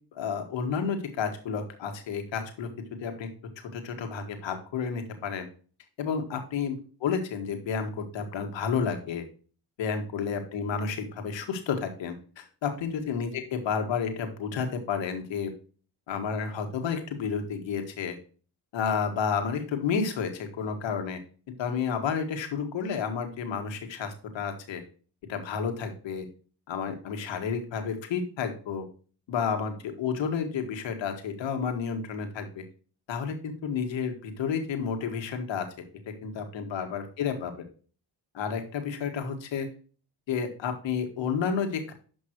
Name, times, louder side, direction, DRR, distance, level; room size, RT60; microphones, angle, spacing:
voice 1, 0.1-2.7 3.0-3.3 3.7-5.5 6.0-6.8 7.0-9.2 9.8-15.5 16.1-18.1 18.7-21.2 21.6-24.8 25.3-26.3 26.7-28.8 29.3-32.6 33.1-35.9 36.2-37.5 38.3-39.7 40.3-41.9, left 6 dB, 85° left, 5 dB, 1.8 m, -31 dB
11.5 x 5.3 x 3.0 m, 0.40 s
cardioid pair, 65°, 44 cm